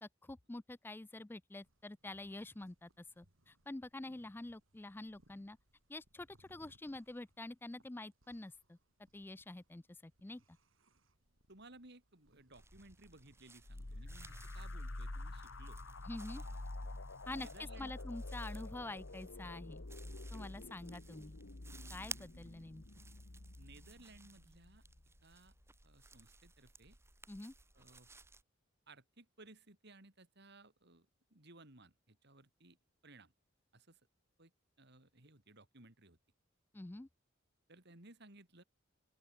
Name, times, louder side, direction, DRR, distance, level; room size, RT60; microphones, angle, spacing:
voice 1, 0.0-5.6 5.9-8.8 9.1-10.6 16.0-16.4 17.3-19.8 20.3-21.4 21.9-22.8 27.3-27.5 36.7-37.1, left 2 dB, 10° left, 0.4 m, -47 dB
sound 1, 1.6-21.3, right 1 dB, 85° right, 6.4 m, -72 dB
voice 2, 11.5-15.8 16.3-16.6 17.3-17.9 18.5-18.6 23.6-24.8 25.2-25.5 25.8-27.0 27.7-28.1 28.9-32.8 33.0-33.3 33.7-34.0 34.4-34.5 34.8-36.2 37.7-38.6, right 2 dB, 60° right, 4.6 m, -60 dB
sound 2, 12.5-28.4, right 3 dB, 15° right, 1.9 m, -57 dB
sound 3, 13.6-25.0, left 2 dB, 75° left, 1.6 m, -48 dB
open air
head